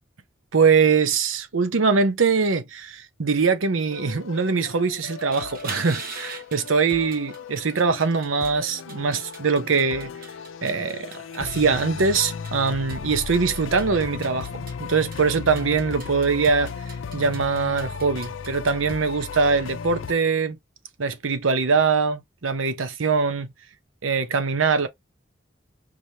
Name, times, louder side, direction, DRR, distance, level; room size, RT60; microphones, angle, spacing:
voice 1, 0.5-10.1 10.6-11.1 11.3-16.7 17.1-20.6 21.0-23.5 24.0-24.9, right 5 dB, 90° right, 0.7 m, -22 dB
sound 1, 3.9-20.1, left 6 dB, 80° left, 0.4 m, -36 dB
sound 2, 5.2-18.9, right 4 dB, 45° right, 1.0 m, -43 dB
4.9 x 2.8 x 3.2 m
head